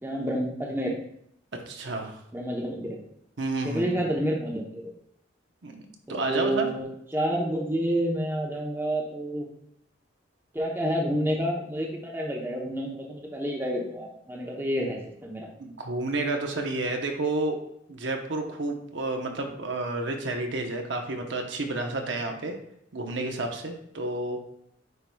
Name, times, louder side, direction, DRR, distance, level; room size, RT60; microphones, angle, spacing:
voice 1, 0.0-1.0 2.3-3.0 3.6-4.9 6.1-9.5 10.5-15.5, equal, 10° right, -1 dB, 0.8 m, -29 dB
voice 2, 1.7-2.1 3.4-4.0 5.6-5.8 6.1-6.7 15.6-17.6 17.9-22.5 22.9-24.4, right 2 dB, 70° right, 3 dB, 0.9 m, -30 dB
9.6 x 4.7 x 2.3 m, 0.72 s
head